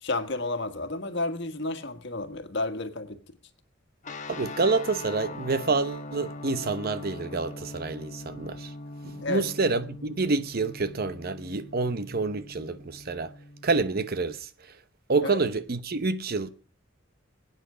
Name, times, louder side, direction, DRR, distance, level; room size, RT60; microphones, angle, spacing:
voice 1, 0.0-3.2 9.2-9.4 15.2-15.3, left 2 dB, 65° left, 1.6 m, -31 dB
sound 1, 4.0-14.4, left 2 dB, 40° left, 1.2 m, -42 dB
voice 2, 4.3-8.7 9.0-13.3 13.6-14.8 15.1-16.5, right 3 dB, 50° right, 0.8 m, -28 dB
21.5 x 9.2 x 5.0 m
head